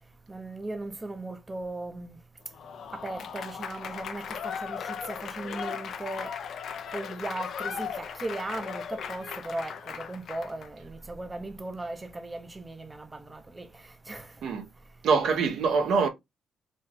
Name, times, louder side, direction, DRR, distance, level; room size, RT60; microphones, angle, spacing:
voice 1, 0.3-2.2 2.9-6.3 6.9-14.4, right 2 dB, 20° right, 0.6 m, -37 dB
Applause / Crowd, 2.5-10.7, left 7 dB, 65° left, 0.5 m, -37 dB
voice 2, 15.0-16.1, right 5 dB, 70° right, 0.9 m, -24 dB
4.1 x 2.3 x 3.5 m
cardioid pair, 90°, 0 cm